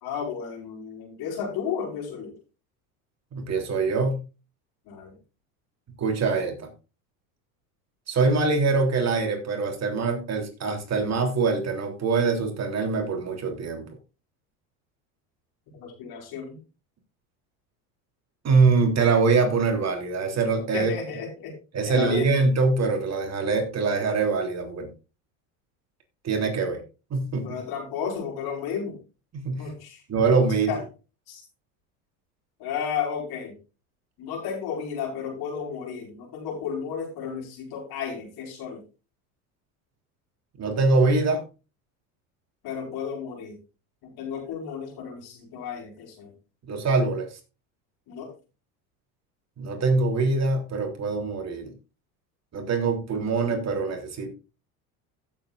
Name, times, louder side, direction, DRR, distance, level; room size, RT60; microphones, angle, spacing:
voice 1, 0.0-2.3 4.9-5.1 15.7-16.6 20.7-21.5 21.8-22.3 27.4-29.0 29.6-30.0 30.7-30.8 31.3-31.4 32.6-33.5 34.2-38.8 42.6-43.6 44.0-46.3 48.1-48.3, left 7 dB, 60° left, 1 dB, 5.1 m, -33 dB
voice 2, 3.3-4.2 6.0-6.7 8.1-13.9 18.4-20.9 21.7-24.9 26.2-26.8 27.1-27.6 29.3-29.7 30.1-30.7 40.6-41.4 46.7-47.4 49.6-51.7 52.5-54.3, right 4 dB, 35° right, 3 dB, 3.5 m, -24 dB
16.0 x 7.7 x 2.5 m, 0.31 s
hypercardioid pair, 90°, 43 cm